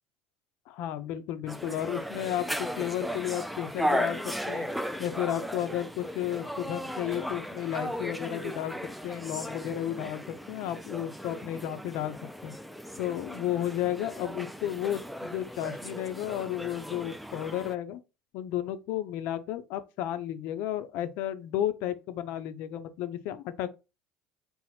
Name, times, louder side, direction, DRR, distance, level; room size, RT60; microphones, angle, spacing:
voice 1, 0.7-4.7 5.0-8.8 9.0-12.1 12.4-12.5 13.0-18.0 18.3-23.7, left 11 dB, 65° left, 0.5 m, -33 dB
sound 1, 1.5-17.8, equal, ahead, 0.4 m, -36 dB
4.1 x 2.0 x 4.2 m
hypercardioid pair, 75°, 3 cm